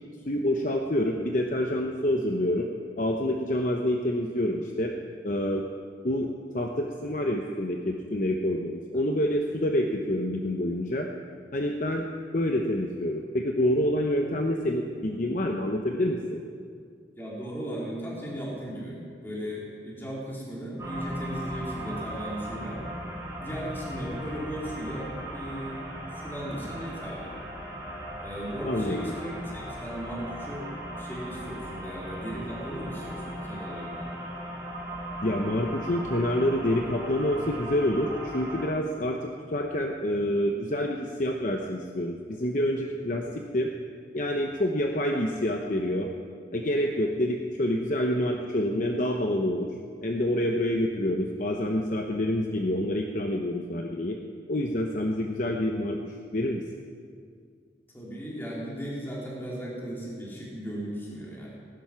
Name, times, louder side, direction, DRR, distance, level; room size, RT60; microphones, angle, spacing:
voice 1, 0.2-2.7 3.0-4.9 5.2-5.6 6.0-11.1 11.5-12.1 12.3-16.4 28.6-29.1 35.2-43.7 44.1-46.1 46.5-49.7 50.0-54.2 54.5-56.6, left 1 dB, 45° left, 2 dB, 0.9 m, -27 dB
voice 2, 17.2-22.8 23.4-25.8 26.1-27.3 28.2-30.7 31.0-34.1 57.9-61.5, equal, 10° left, -5 dB, 3.4 m, -37 dB
sound 1, 20.8-38.7, equal, 15° right, 2.9 m, -38 dB
19.0 x 11.0 x 5.8 m, 2.2 s
head